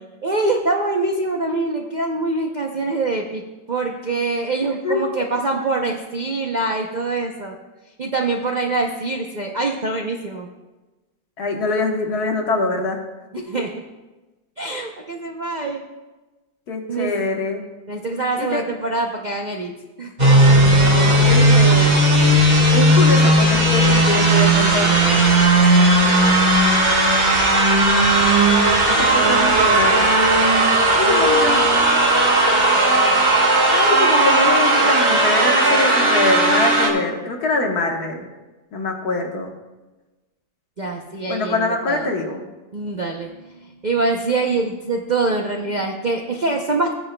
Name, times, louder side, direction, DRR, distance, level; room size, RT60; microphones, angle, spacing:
voice 1, 0.2-3.4 3.7-7.5 8.0-10.5 13.3-13.7 14.6-15.8 16.9-17.3 17.9-19.7 20.0-20.1 26.0-26.4 40.8-42.1 42.7-46.9, right 3 dB, 75° right, 1 dB, 0.4 m, -24 dB
voice 2, 11.4-13.0 16.7-17.6 18.4-18.6 20.9-22.0 22.7-25.2 28.2-28.3 28.8-30.2 30.9-31.6 33.6-38.3 38.7-39.5 41.3-42.4, left 3 dB, 65° left, 1 dB, 1.7 m, -24 dB
sound 1, 20.2-36.9, right 1 dB, 25° right, 1.4 m, -15 dB
16.0 x 9.7 x 2.2 m, 1.1 s
omnidirectional pair, 1.9 m